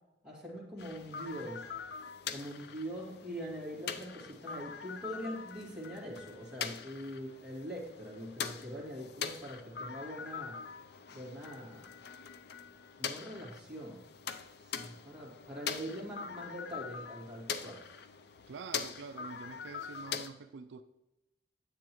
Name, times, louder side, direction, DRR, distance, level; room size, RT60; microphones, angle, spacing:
voice 1, 0.2-1.7 2.3-10.6 11.1-11.9 13.0-14.0 14.6-17.8, equal, 5° right, -4 dB, 2.0 m, -43 dB
sound 1, 0.8-20.3, left 6 dB, 55° left, 0.4 m, -43 dB
voice 2, 18.5-20.8, right 5 dB, 70° right, 9 dB, 0.4 m, -46 dB
9.7 x 7.7 x 3.0 m, 0.97 s
head